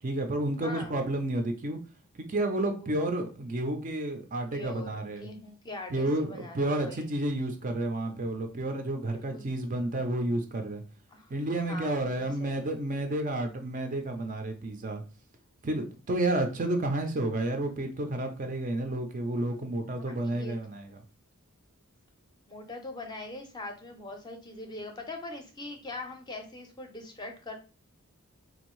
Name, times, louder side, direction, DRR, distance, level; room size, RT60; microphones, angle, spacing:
voice 1, 0.0-1.8 2.2-5.3 5.9-10.8 11.3-15.0 15.6-20.9, right 1 dB, 35° right, 5 dB, 0.4 m, -31 dB
voice 2, 0.6-1.0 2.6-3.0 4.5-7.1 9.0-9.5 11.1-11.3 11.7-12.5 19.9-20.6 22.5-27.6, left 2 dB, 20° left, 4 dB, 0.5 m, -42 dB
3.9 x 2.6 x 3.0 m, 0.35 s
head